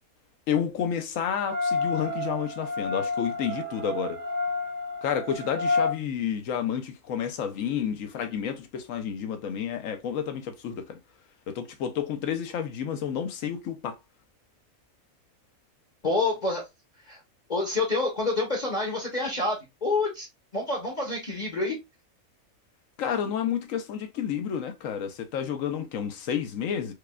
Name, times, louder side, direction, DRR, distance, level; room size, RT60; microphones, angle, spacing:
voice 1, 0.5-4.2 5.0-11.0 11.5-14.0 23.0-26.9, left 8 dB, 70° left, 0.9 m, -30 dB
sound 1, 1.4-5.9, left 3 dB, 65° right, 1.1 m, -29 dB
voice 2, 16.0-16.7 17.1-17.2 17.5-20.3 20.5-21.8, left 2 dB, 35° left, 0.9 m, -27 dB
4.8 x 2.3 x 2.2 m
omnidirectional pair, 1.5 m